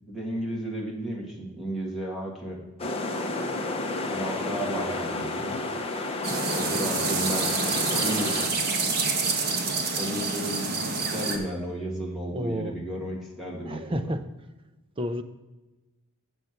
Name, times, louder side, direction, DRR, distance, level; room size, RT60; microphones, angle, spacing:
voice 1, 0.1-2.6 4.1-5.6 6.5-7.5 7.9-8.4 10.0-14.1, right 1 dB, ahead, -3 dB, 1.7 m, -33 dB
sound 1, 2.8-8.5, left 2 dB, 25° left, 0.8 m, -31 dB
sound 2, 6.2-11.4, right 4 dB, 45° right, 1.2 m, -27 dB
voice 2, 12.3-12.8 13.6-14.3 15.0-15.2, equal, 25° right, 8 dB, 0.5 m, -30 dB
7.9 x 6.8 x 5.9 m, 1.1 s
head